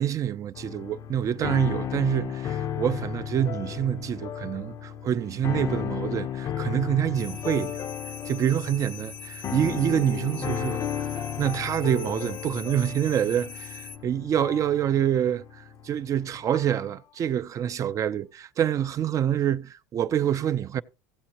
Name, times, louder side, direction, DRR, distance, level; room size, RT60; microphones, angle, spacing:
voice 1, 0.0-7.8 8.2-20.8, right 10 dB, 35° right, 0.4 m, -26 dB
sound 1, 0.5-16.8, left 9 dB, 40° left, 0.6 m, -34 dB
sound 2, 7.1-14.0, left 6 dB, 70° left, 0.9 m, -43 dB
15.5 x 7.6 x 2.9 m
supercardioid pair, 115°, 10 cm